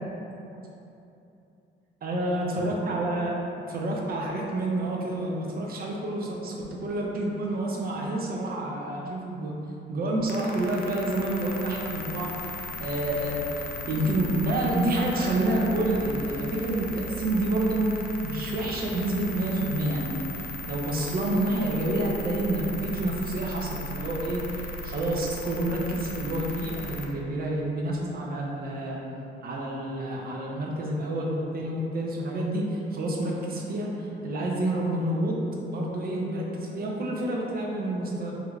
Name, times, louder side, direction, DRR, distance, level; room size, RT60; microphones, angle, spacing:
voice 1, 2.0-3.4 3.7-6.5 6.8-9.5 9.9-12.5 12.8-29.0 29.4-35.4 35.7-38.3, right 1 dB, 50° right, -2 dB, 0.6 m, -28 dB
sound 1, 10.3-27.1, left 1 dB, 45° left, 0.4 m, -37 dB
3.3 x 2.9 x 2.4 m, 2.8 s
cardioid pair, 90°, 20 cm